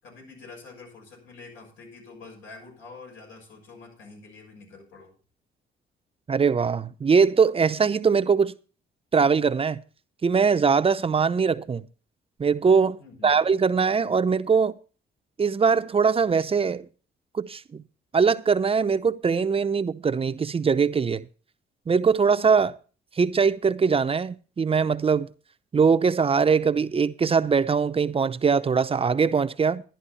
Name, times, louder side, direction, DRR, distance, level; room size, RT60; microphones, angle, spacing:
voice 1, 0.0-5.1 13.0-13.4, left 4 dB, 85° left, 6.6 m, -46 dB
voice 2, 6.3-8.5 9.1-9.8 10.2-11.9 12.4-14.8 15.4-16.9 17.3-17.8 18.1-21.3 21.9-22.8 23.2-25.3 25.7-29.8, right 5 dB, 30° right, 0.6 m, -22 dB
11.5 x 11.0 x 4.2 m
cardioid pair, 90°, 20 cm